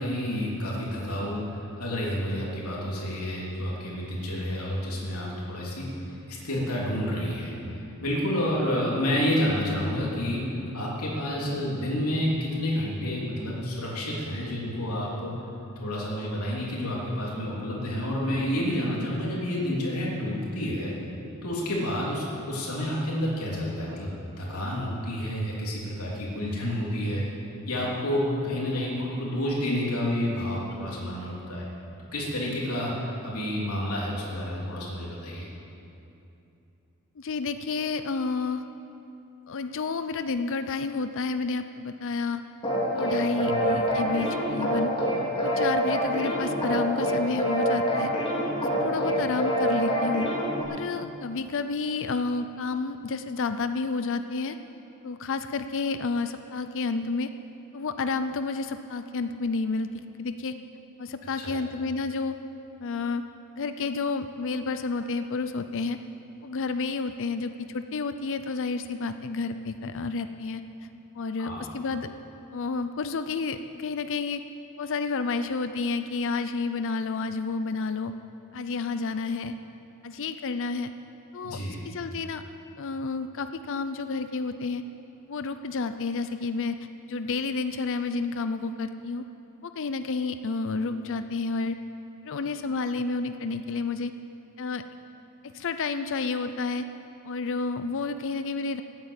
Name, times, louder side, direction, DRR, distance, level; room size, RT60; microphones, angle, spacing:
voice 1, 0.0-5.9 6.3-10.4 10.7-15.3 15.8-20.9 21.4-24.1 24.4-27.2 27.7-31.7 32.1-35.5 43.4-43.6 61.4-61.5 71.4-71.7 81.4-81.8, left 1 dB, 75° left, -4 dB, 3.3 m, -29 dB
voice 2, 37.2-38.6 39.5-42.4 42.9-44.9 45.4-48.1 48.6-50.3 50.7-54.6 55.0-57.3 57.7-59.9 60.2-60.6 61.0-62.4 62.8-63.2 63.6-66.0 66.4-70.6 71.1-72.1 72.5-74.4 74.8-78.1 78.5-79.5 80.0-80.9 81.3-81.6 81.8-82.4 82.8-84.8 85.3-86.8 87.1-89.3 89.6-91.8 92.2-94.1 94.6-94.8 95.4-96.9 97.2-98.8, left 4 dB, 60° left, 10 dB, 0.5 m, -30 dB
sound 1, 42.6-50.6, equal, 25° left, 3.4 m, -26 dB
16.0 x 9.0 x 8.8 m, 2.8 s
head